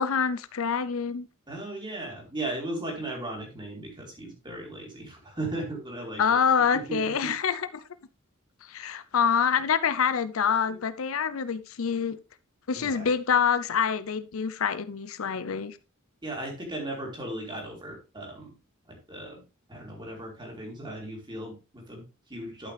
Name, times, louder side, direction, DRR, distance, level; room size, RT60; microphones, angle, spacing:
voice 1, 0.0-1.3 6.2-7.8 8.7-12.2 12.7-15.8, left 6 dB, 75° left, 0.6 m, -26 dB
voice 2, 1.5-6.4 6.7-7.3 8.8-8.9 10.7-10.8 12.7-13.1 16.2-18.5 18.9-19.4 19.7-22.7, right 2 dB, 20° right, 3.3 m, -37 dB
11.0 x 5.7 x 3.3 m
head